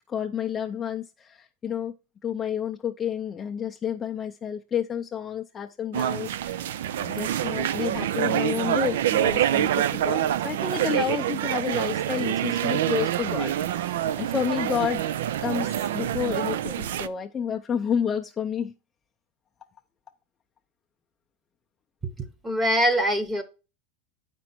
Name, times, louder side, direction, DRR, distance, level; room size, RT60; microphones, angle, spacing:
voice 1, 0.1-1.3 1.6-1.9 2.2-6.7 7.0-13.5 13.8-15.0 15.4-18.7, left 8 dB, 20° left, 0.5 m, -30 dB
sound 1, 5.9-17.1, right 11 dB, 85° right, 0.4 m, -26 dB
voice 2, 22.4-23.4, equal, 15° right, 1.0 m, -23 dB
8.1 x 5.3 x 4.4 m
supercardioid pair, 140°, 0 cm